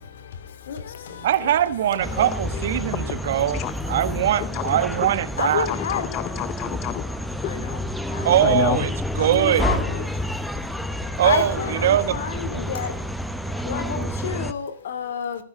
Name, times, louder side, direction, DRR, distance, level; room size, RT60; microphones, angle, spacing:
voice 1, 1.2-3.6 3.9-5.7 8.2-8.9 9.2-9.7 11.2-12.2, right 11 dB, 65° right, 1.4 m, -21 dB
sound 1, 2.0-14.5, equal, ahead, 0.9 m, -29 dB
voice 2, 4.4-5.2 5.6-7.0 7.4-7.7 8.4-8.8, left 16 dB, 35° left, 0.6 m, -29 dB
voice 3, 5.4-6.0 9.3-9.8 11.2-11.7 12.2-12.3 12.7-12.9 13.7-14.0 14.2-15.4, left 8 dB, 70° left, 2.4 m, -27 dB
24.5 x 9.8 x 3.5 m
hypercardioid pair, 135°, 0 cm